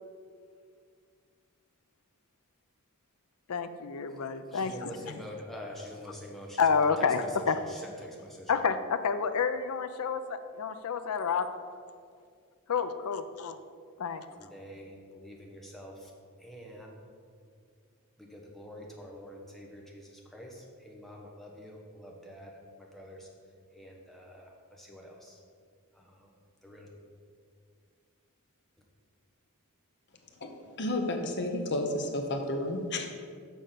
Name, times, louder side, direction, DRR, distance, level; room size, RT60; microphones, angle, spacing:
voice 1, 3.5-4.9 6.6-7.6 8.5-11.5 12.7-13.6 14.0-14.3, left 5 dB, 75° left, 10 dB, 0.5 m, -29 dB
voice 2, 4.5-8.6 14.4-16.1 16.4-17.0 18.2-23.3 23.7-25.4 25.9-26.3 26.6-26.9, equal, ahead, -1 dB, 1.1 m, -46 dB
voice 3, 30.4-33.1, left 1 dB, 50° left, 4 dB, 0.9 m, -32 dB
7.2 x 5.2 x 5.7 m, 2.1 s
head